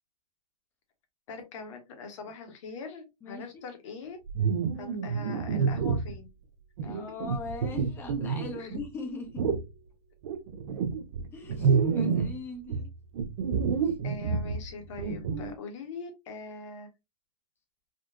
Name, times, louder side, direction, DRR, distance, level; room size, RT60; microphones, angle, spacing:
voice 1, 1.3-4.2 4.7-6.3 6.8-7.0 8.6-8.8 14.0-16.9, left 4 dB, 50° left, 1.1 m, -42 dB
voice 2, 3.2-3.6 6.8-9.4 11.3-12.9 13.8-13.9, left 3 dB, 10° left, 0.6 m, -40 dB
sound 1, 4.3-6.2 6.8-8.9 9.4-9.7 10.2-12.4 12.7-15.6, right 5 dB, 45° right, 0.4 m, -29 dB
3.7 x 2.3 x 2.5 m
hypercardioid pair, 150°, 20 cm